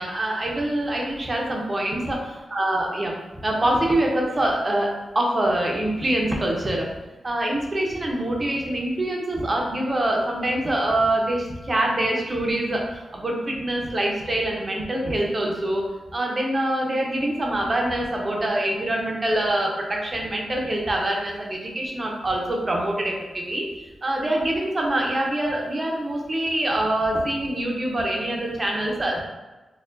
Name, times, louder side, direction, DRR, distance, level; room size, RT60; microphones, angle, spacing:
voice 1, 0.0-2.3 2.5-6.9 7.2-15.8 16.1-23.7 24.0-29.2, right 1 dB, 30° right, -1 dB, 0.7 m, -25 dB
4.3 x 2.3 x 2.5 m, 1.1 s
wide cardioid pair, 100°, 0 cm